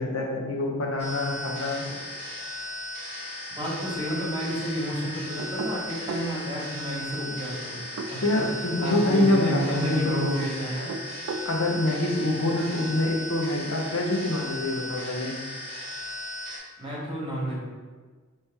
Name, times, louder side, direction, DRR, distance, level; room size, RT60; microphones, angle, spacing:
voice 1, 0.0-1.8 8.2-10.4 11.4-15.3, left 1 dB, 80° left, 0 dB, 0.7 m, -25 dB
sound 1, 1.0-16.6, left 1 dB, 30° left, 1.1 m, -37 dB
voice 2, 3.6-10.9 16.8-17.6, equal, 25° right, -5 dB, 1.2 m, -31 dB
sound 2, 5.4-6.3 7.8-8.6 10.7-11.5, right 3 dB, 80° right, 0.3 m, -34 dB
4.2 x 3.2 x 3.4 m, 1.4 s
head